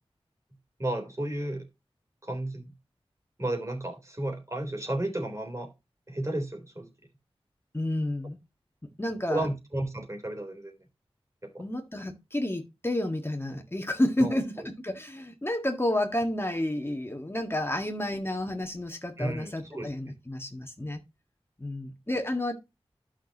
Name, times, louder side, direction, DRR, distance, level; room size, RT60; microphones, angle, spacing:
voice 1, 0.8-1.7 2.2-2.7 3.4-5.7 6.1-6.9 9.3-10.7 11.4-11.6 14.2-14.7 19.2-19.9, right 1 dB, 30° right, 3.7 m, -33 dB
voice 2, 7.7-8.4 9.0-9.5 11.6-21.0 21.6-22.6, left 1 dB, 25° left, 1.7 m, -30 dB
11.5 x 6.3 x 2.9 m
cardioid pair, 40°, 10 cm